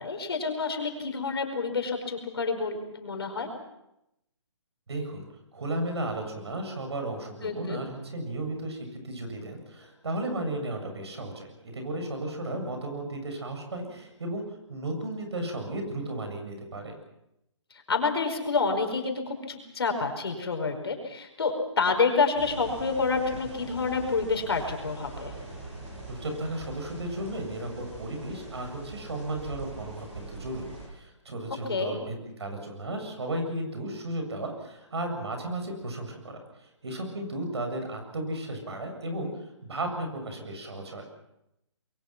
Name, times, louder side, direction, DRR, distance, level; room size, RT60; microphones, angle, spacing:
voice 1, 0.0-3.5 7.4-7.8 17.9-25.3 31.7-32.0, left 4 dB, 55° left, 4 dB, 4.9 m, -28 dB
voice 2, 4.9-5.3 5.5-14.4 14.7-16.9 26.1-36.4 36.8-41.0, right 1 dB, 60° right, 4 dB, 7.5 m, -34 dB
sound 1, 22.3-30.9, right 3 dB, 20° right, 7.8 m, -42 dB
26.0 x 23.0 x 6.0 m, 0.84 s
hypercardioid pair, 180°, 15 cm